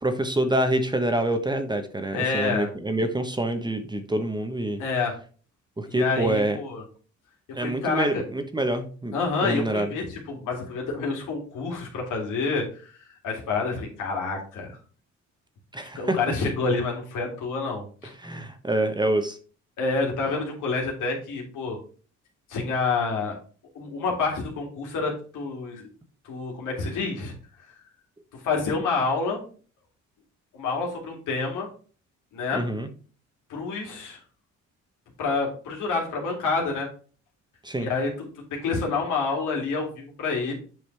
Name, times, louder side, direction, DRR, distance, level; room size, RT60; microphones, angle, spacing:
voice 1, 0.0-4.8 5.8-6.6 7.5-9.9 15.7-16.2 18.0-19.4 32.5-32.9 37.6-37.9, right 1 dB, 15° right, 7 dB, 1.0 m, -26 dB
voice 2, 2.1-2.7 4.8-5.1 5.9-6.8 7.6-8.2 9.1-12.6 13.0-14.8 15.8-18.1 19.8-21.8 22.5-23.4 23.7-25.9 26.2-27.3 28.3-29.4 30.5-31.7 32.3-32.6 33.5-34.2 35.2-36.9 37.7-40.5, left 4 dB, 85° left, 0 dB, 2.7 m, -28 dB
7.9 x 5.0 x 3.4 m, 0.39 s
cardioid pair, 90°, 30 cm